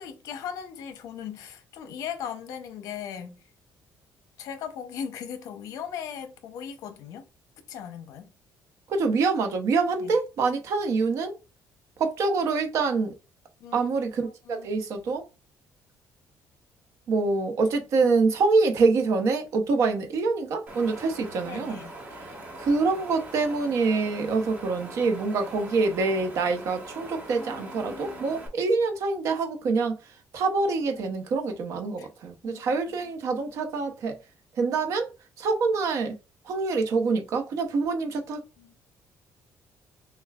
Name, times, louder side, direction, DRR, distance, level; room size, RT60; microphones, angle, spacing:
voice 1, 0.0-3.4 4.4-7.2 7.7-8.2 10.0-10.1 13.6-13.9 14.5-14.7 21.4-21.9 27.4-28.5 31.0-31.1 32.0-32.1 32.4-33.1 38.6-38.8, left 8 dB, 70° left, 0.7 m, -38 dB
voice 2, 8.9-11.4 12.0-13.1 13.7-15.2 17.1-21.8 22.1-30.0 30.3-34.2 34.6-35.1 35.4-36.1 36.4-38.4, right 4 dB, 55° right, 0.9 m, -25 dB
Wind, 20.7-28.5, right 1 dB, 25° right, 1.2 m, -42 dB
6.4 x 2.3 x 2.3 m
cardioid pair, 175°, 6 cm